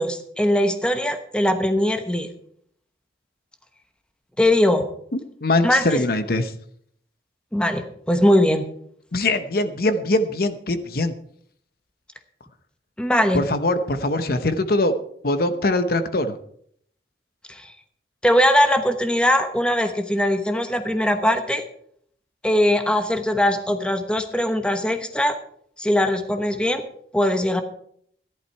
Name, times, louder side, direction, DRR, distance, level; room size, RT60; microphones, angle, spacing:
voice 1, 0.0-2.3 4.4-4.9 5.6-6.0 7.5-8.7 13.0-13.4 17.5-17.7 18.2-21.6 22.4-25.4 25.8-26.8 27.1-27.6, left 1 dB, 5° left, 7 dB, 1.0 m, -20 dB
voice 2, 5.1-6.5 9.1-11.1 13.3-14.9 15.2-16.4, left 2 dB, 55° left, 10 dB, 0.8 m, -22 dB
14.0 x 11.5 x 4.6 m, 0.65 s
head